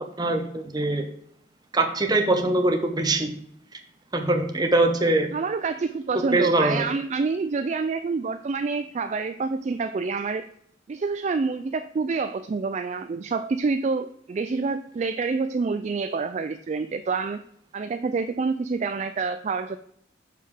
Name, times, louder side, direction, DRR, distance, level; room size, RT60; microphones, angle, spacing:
voice 1, 0.2-1.0 1.7-3.3 4.1-5.3 6.3-6.8, right 2 dB, 20° right, 5 dB, 0.9 m, -22 dB
voice 2, 5.3-10.5 10.9-17.4 17.7-19.8, right 4 dB, 35° right, 9 dB, 0.3 m, -27 dB
6.6 x 5.4 x 4.8 m, 0.70 s
head